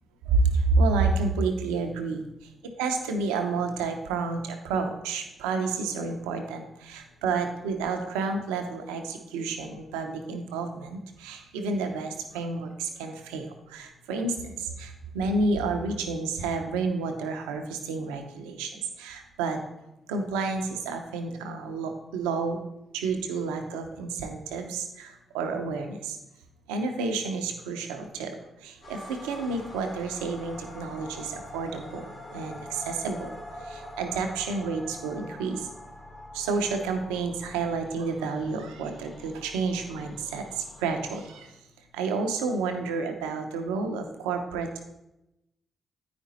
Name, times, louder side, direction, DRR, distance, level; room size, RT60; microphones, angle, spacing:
voice 1, 0.3-2.2 2.8-13.5 13.7-14.9 15.1-18.7 19.0-19.6 20.1-22.6 22.9-25.1 25.3-26.2 26.7-28.3 28.6-33.3 33.7-35.6 36.3-41.5 41.9-44.7, right 4 dB, 90° right, 5 dB, 0.7 m, -30 dB
sound 1, 28.8-41.4, left 1 dB, 65° left, 3.0 m, -45 dB
8.8 x 5.2 x 4.1 m, 0.92 s
hypercardioid pair, 45°, 0 cm